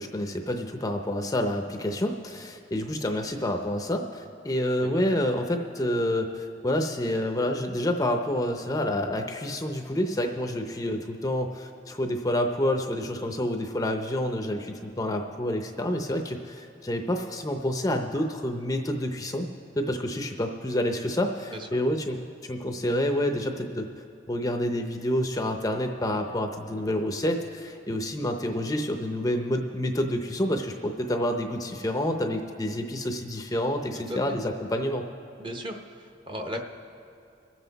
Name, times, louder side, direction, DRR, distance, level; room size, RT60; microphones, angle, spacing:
voice 1, 0.0-19.5 19.8-22.2 22.5-23.9 24.3-35.0, left 1 dB, 20° left, 4 dB, 0.6 m, -28 dB
voice 2, 34.1-34.4 35.4-36.6, equal, 30° right, 3 dB, 0.9 m, -36 dB
23.0 x 7.8 x 4.0 m, 2.5 s
head